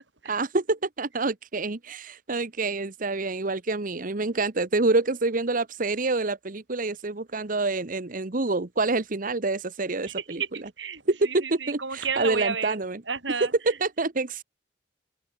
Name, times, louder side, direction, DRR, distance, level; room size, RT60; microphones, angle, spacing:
voice 1, 0.2-10.4 11.1-13.0 13.7-14.4, right 3 dB, 50° right, 1.1 m, -27 dB
voice 2, 10.0-13.8, right 5 dB, 80° right, 5.0 m, -32 dB
open air
head